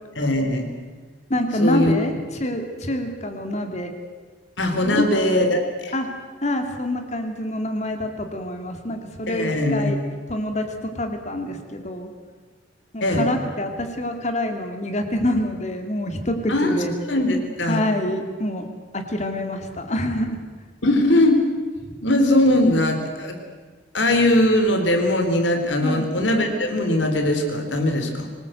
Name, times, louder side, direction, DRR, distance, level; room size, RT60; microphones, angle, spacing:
voice 1, 0.2-0.7 1.6-1.9 4.6-5.9 9.3-9.9 13.0-13.3 16.5-16.8 17.1-17.9 20.8-21.4 22.0-23.4 23.9-28.3, left 1 dB, 80° left, 5 dB, 3.9 m, -20 dB
voice 2, 1.3-2.1 2.4-3.9 4.8-5.3 5.9-6.1 6.4-10.0 10.3-12.1 12.9-16.9 17.7-18.6 18.9-20.4 25.8-26.1, left 1 dB, 40° left, 5 dB, 2.7 m, -26 dB
24.5 x 20.0 x 8.0 m, 1.5 s
head